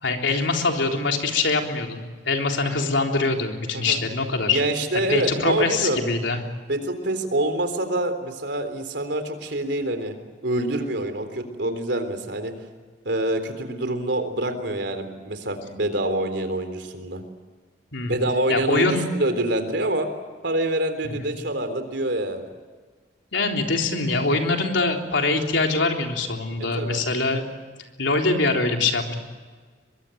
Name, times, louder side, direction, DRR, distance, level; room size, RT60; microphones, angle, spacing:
voice 1, 0.0-4.6 5.1-6.4 17.9-18.2 18.5-19.1 21.0-21.3 23.3-27.4 28.0-29.1, left 3 dB, 85° left, 2 dB, 3.7 m, -23 dB
voice 2, 4.5-6.3 6.7-10.1 10.4-12.5 13.1-17.2 18.0-20.1 20.4-22.4 26.8-27.0, right 1 dB, 65° right, 8 dB, 3.7 m, -26 dB
24.0 x 22.5 x 9.2 m, 1.5 s
head